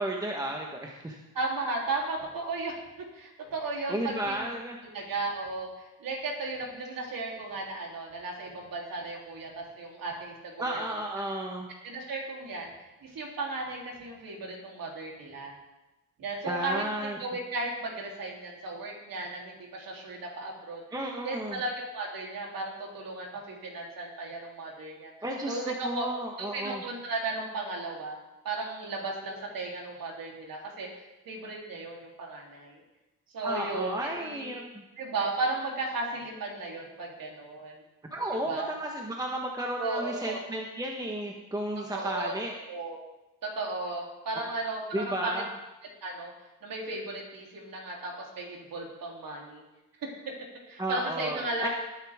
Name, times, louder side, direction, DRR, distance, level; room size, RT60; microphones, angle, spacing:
voice 1, 0.0-1.2 3.9-4.8 10.6-11.7 16.4-17.2 20.9-21.6 25.2-26.8 33.4-34.8 38.1-42.6 44.9-45.5 50.8-51.7, right 1 dB, 10° right, 0 dB, 1.3 m, -33 dB
voice 2, 1.3-4.4 4.9-10.8 11.2-11.3 11.8-12.7 13.0-15.6 16.2-20.8 21.2-25.1 25.5-26.1 26.4-28.2 28.4-30.9 31.3-32.8 33.3-34.5 35.0-37.8 38.5-38.7 39.8-40.4 41.9-42.3 42.7-43.0 43.4-45.4 46.0-46.3 46.6-49.6 50.0-50.3 50.7-51.7, right 2 dB, 75° right, -2 dB, 3.5 m, -35 dB
19.5 x 9.6 x 3.7 m, 1.0 s
cardioid pair, 115°, 34 cm